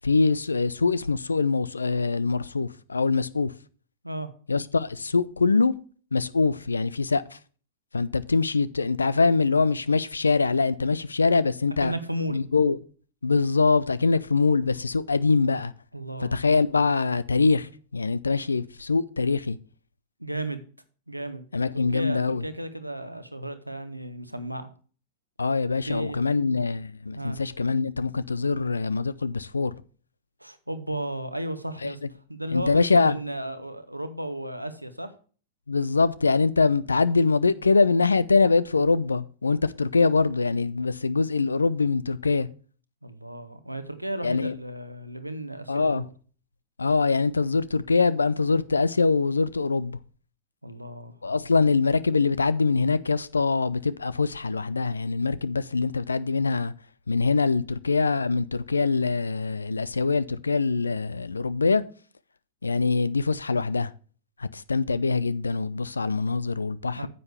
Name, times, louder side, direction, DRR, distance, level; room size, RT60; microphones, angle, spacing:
voice 1, 0.0-3.5 4.5-5.7 6.1-7.4 7.9-11.9 12.3-12.8 13.2-15.7 16.2-19.6 21.5-22.4 25.4-29.7 31.8-31.9 32.5-33.2 35.7-42.5 44.2-44.5 45.7-46.0 46.8-50.0 51.2-56.7 57.1-61.8 62.6-63.9 64.4-67.1, left 4 dB, 75° left, 0.5 m, -23 dB
voice 2, 11.8-12.4 15.9-16.4 20.2-20.6 21.1-21.4 21.7-24.7 25.9-26.2 27.1-27.4 30.4-35.1 43.0-46.1 50.6-51.1 66.9-67.1, right 1 dB, 90° right, 1.0 m, -34 dB
9.5 x 7.7 x 3.4 m
figure-of-eight pair, 95°, 0 cm